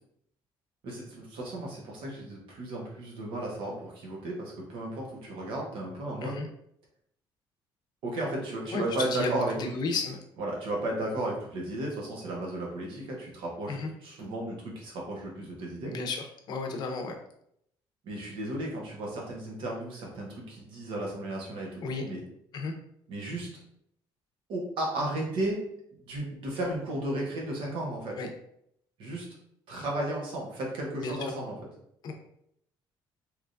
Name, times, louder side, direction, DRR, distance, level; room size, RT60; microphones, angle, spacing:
voice 1, 0.8-6.4 8.0-9.6 10.4-15.9 18.0-22.2 23.1-23.5 24.5-25.6 26.1-28.2 29.0-29.3 29.7-31.6, right 1 dB, 70° right, -2 dB, 1.2 m, -34 dB
voice 2, 8.7-10.2 13.7-13.9 15.9-17.2 21.8-22.0 22.5-22.7 28.2-28.3 30.9-31.3 32.0-32.1, left 3 dB, 50° left, 4 dB, 0.6 m, -33 dB
3.4 x 2.9 x 2.5 m, 0.72 s
cardioid pair, 155°, 9 cm